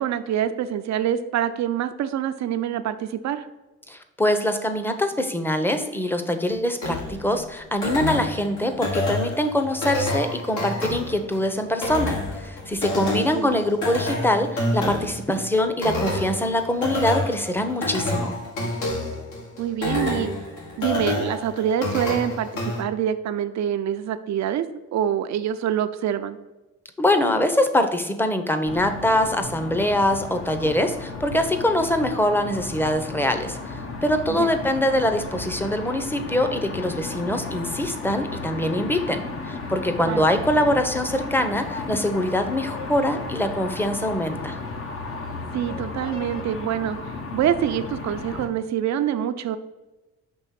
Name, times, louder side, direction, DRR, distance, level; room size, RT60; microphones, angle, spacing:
voice 1, 0.0-3.5 13.0-13.6 19.6-20.3 20.8-24.6 24.9-26.4 34.3-34.5 40.0-40.3 45.5-47.0 47.3-49.6, right 10 dB, 65° right, 10 dB, 0.6 m, -26 dB
voice 2, 3.9-18.3 27.0-44.6, left 1 dB, 5° left, 7 dB, 0.8 m, -23 dB
sound 1, 6.8-22.8, left 2 dB, 75° left, 1.9 m, -28 dB
sound 2, 28.6-48.5, left 3 dB, 45° left, 0.9 m, -34 dB
6.2 x 3.0 x 5.8 m, 1.1 s
cardioid pair, 90°, 30 cm